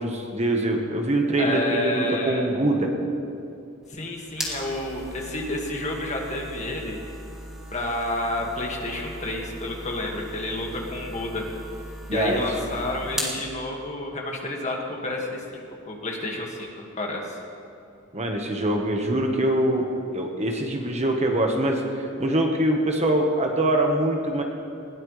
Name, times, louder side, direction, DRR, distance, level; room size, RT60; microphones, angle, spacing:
voice 1, 0.0-2.9 12.1-12.4 18.1-21.8 22.2-24.4, right 1 dB, 35° right, 2 dB, 1.4 m, -23 dB
voice 2, 1.4-2.5 3.9-7.0 7.7-11.4 12.1-17.4, left 1 dB, 35° left, 0 dB, 2.0 m, -30 dB
sound 1, 3.8-13.4, equal, ahead, 2.6 m, -38 dB
20.5 x 18.0 x 3.4 m, 2.6 s
head